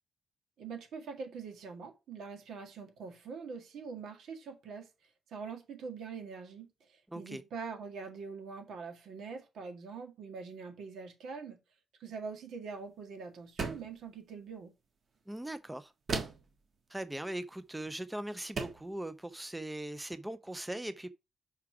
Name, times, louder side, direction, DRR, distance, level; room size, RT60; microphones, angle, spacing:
voice 1, 0.6-4.9 5.3-11.6 12.0-14.7, right 5 dB, 85° right, 1.8 m, -44 dB
voice 2, 7.1-7.4 15.3-15.9 16.9-21.1, right 1 dB, 10° right, 0.4 m, -40 dB
sound 1, 13.6-14.0 16.1-16.5 17.9-18.0 18.6-18.9, right 4 dB, 45° right, 1.4 m, -36 dB
5.8 x 4.9 x 4.8 m
wide cardioid pair, 150°, 0 cm